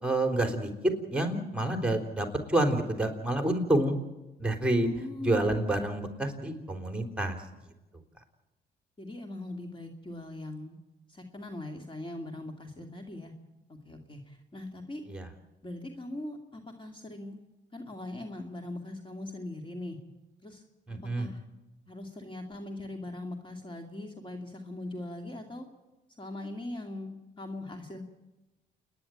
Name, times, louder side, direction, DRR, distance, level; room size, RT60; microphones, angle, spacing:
voice 1, 0.0-4.0 4.4-4.9 5.2-7.4 15.1-15.3 20.9-21.3, right 1 dB, 5° right, 5 dB, 3.6 m, -28 dB
voice 2, 4.8-5.6 9.0-10.8 11.1-13.3 13.7-15.0 15.6-17.4 17.7-20.0 20.4-20.6 20.9-21.4 21.9-25.7 26.2-28.0, left 1 dB, 25° left, 4 dB, 2.5 m, -41 dB
28.5 x 10.5 x 8.8 m, 1.1 s
cardioid pair, 75°, 20 cm